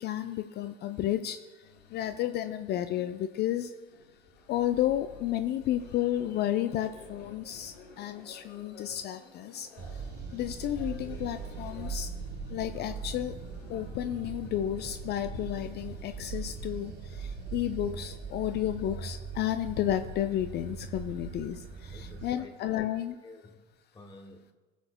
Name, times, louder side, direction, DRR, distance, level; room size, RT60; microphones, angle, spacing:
voice 1, 0.0-3.7 4.5-12.1 12.5-13.4 13.7-23.1, left 12 dB, 35° left, 10 dB, 0.4 m, -32 dB
sound 1, 1.6-18.4, left 4 dB, 65° left, 2.1 m, -54 dB
sound 2, 9.8-22.3, right 5 dB, 35° right, 1.4 m, -40 dB
voice 2, 21.9-22.9 23.2-24.5, left 2 dB, 15° left, 4 dB, 0.8 m, -51 dB
18.5 x 6.7 x 2.3 m, 1.3 s
figure-of-eight pair, 70°, 29 cm